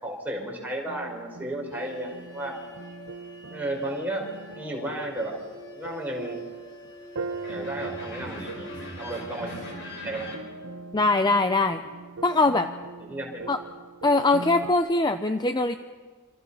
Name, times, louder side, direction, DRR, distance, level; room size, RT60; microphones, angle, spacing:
voice 1, 0.0-2.6 3.5-4.3 4.5-5.4 5.7-6.4 7.5-8.7 9.0-9.5 10.0-10.3 13.0-13.5 14.3-14.4, right 1 dB, 10° right, -1 dB, 5.2 m, -33 dB
sound 1, 0.9-14.7, right 4 dB, 65° right, 1.0 m, -41 dB
sound 2, 1.7-10.4, left 1 dB, 55° left, 5.4 m, -43 dB
voice 2, 10.9-11.8 12.2-12.7 13.5-13.6 14.0-15.7, left 2 dB, 20° left, 8 dB, 0.6 m, -22 dB
27.0 x 27.0 x 5.7 m, 1.5 s
head